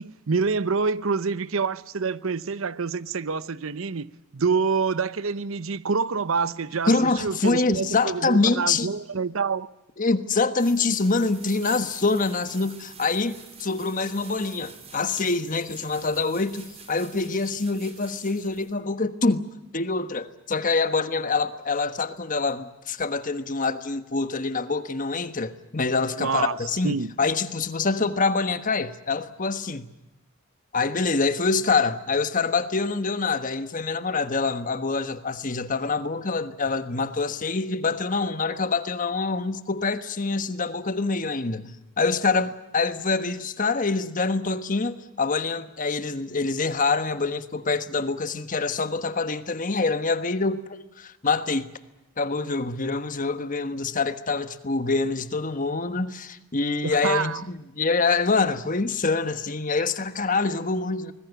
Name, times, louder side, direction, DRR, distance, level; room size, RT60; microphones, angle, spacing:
voice 1, 0.0-9.7 26.2-26.6 26.8-27.1 56.8-57.4, right 5 dB, 70° right, 0.8 m, -27 dB
voice 2, 6.9-8.9 10.0-19.5 19.7-29.9 30.7-41.7 42.0-51.7 52.2-61.1, left 4 dB, 40° left, 1.3 m, -25 dB
sound 1, 10.6-18.8, right 5 dB, 30° right, 4.5 m, -46 dB
25.0 x 20.5 x 8.2 m
head